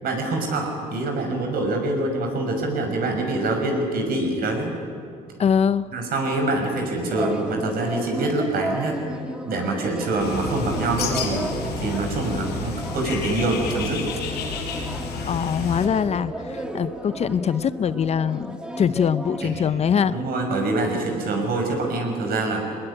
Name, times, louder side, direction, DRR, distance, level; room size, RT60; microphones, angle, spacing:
voice 1, 0.0-4.8 5.9-9.0 9.4-11.5 11.8-14.1 19.4-19.6 20.1-22.6, right 2 dB, 60° right, 3 dB, 6.1 m, -25 dB
voice 2, 5.4-5.9 15.2-20.2, left 7 dB, 40° left, 15 dB, 0.6 m, -23 dB
sound 1, 7.1-20.2, right 1 dB, 5° right, 2.0 m, -34 dB
Bird, 10.2-15.9, left 5 dB, 80° left, 5.2 m, -31 dB
23.0 x 20.0 x 10.0 m, 2.4 s
cardioid pair, 110°, 17 cm